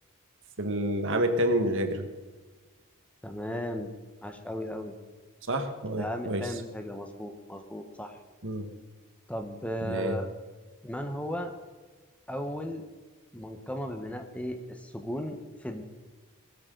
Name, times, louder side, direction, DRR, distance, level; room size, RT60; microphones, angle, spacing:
voice 1, 0.6-2.1 5.5-6.5 8.4-8.7 9.8-10.2, right 1 dB, 60° right, 7 dB, 1.6 m, -28 dB
voice 2, 3.2-3.9 4.2-4.9 6.0-8.2 9.3-10.3 10.8-11.5 12.3-12.8 13.3-15.8, equal, 5° left, 6 dB, 1.2 m, -36 dB
20.0 x 13.0 x 4.0 m, 1.3 s
head